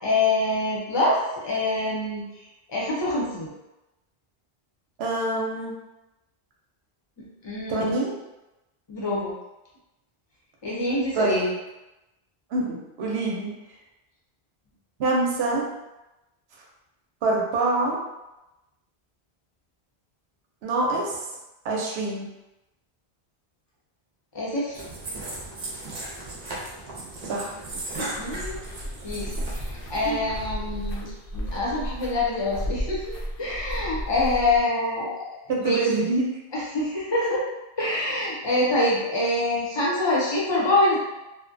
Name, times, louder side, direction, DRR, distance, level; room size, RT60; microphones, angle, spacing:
voice 1, 0.0-2.2 2.7-3.5 7.4-7.9 8.9-9.3 10.6-11.5 24.3-24.8 28.2-28.6 29.0-35.3 35.6-35.8 36.5-37.5 37.8-41.0, left 2 dB, 30° left, -5 dB, 0.6 m, -25 dB
voice 2, 5.0-5.7 7.7-8.1 11.1-11.6 12.5-13.5 15.0-15.7 17.2-18.0 20.6-21.2 21.6-22.3 27.2-27.5 30.0-30.2 35.5-36.3, right 2 dB, 90° right, -2 dB, 0.9 m, -25 dB
sound 1, 24.7-30.9, right 2 dB, 50° right, 0.6 m, -37 dB
sound 2, 27.7-34.6, equal, 65° left, 0.7 m, -34 dB
2.6 x 2.1 x 2.5 m, 0.98 s
omnidirectional pair, 1.0 m